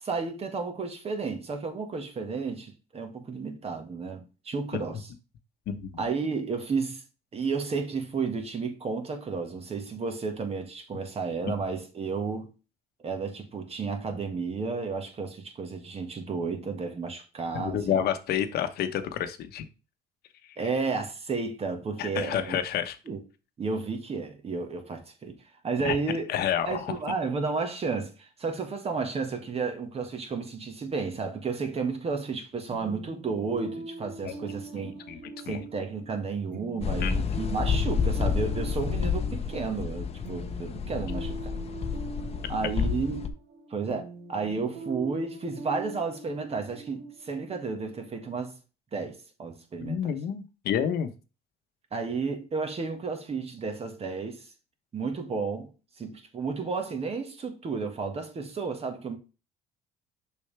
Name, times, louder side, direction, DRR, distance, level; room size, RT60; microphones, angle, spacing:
voice 1, 0.0-5.0 6.0-7.0 7.3-12.5 13.0-18.0 20.6-22.6 23.1-23.2 23.6-25.4 25.6-26.2 26.7-35.0 35.4-41.5 42.5-43.2 43.7-48.6 48.9-50.1 51.9-54.5 54.9-55.7 56.0-59.2, right 4 dB, 35° right, 1.8 m, -32 dB
voice 2, 5.7-6.1 17.5-19.7 20.4-20.6 22.0-23.0 25.8-26.0 26.3-27.0 34.2-34.3 34.8-35.2 35.5-35.7 37.0-37.1 49.8-51.1, left 9 dB, 70° left, 1.1 m, -29 dB
sound 1, 32.7-48.3, right 3 dB, 55° right, 2.8 m, -43 dB
sound 2, 36.8-43.3, left 6 dB, 40° left, 0.9 m, -29 dB
6.7 x 5.4 x 3.4 m
cardioid pair, 110°, 17 cm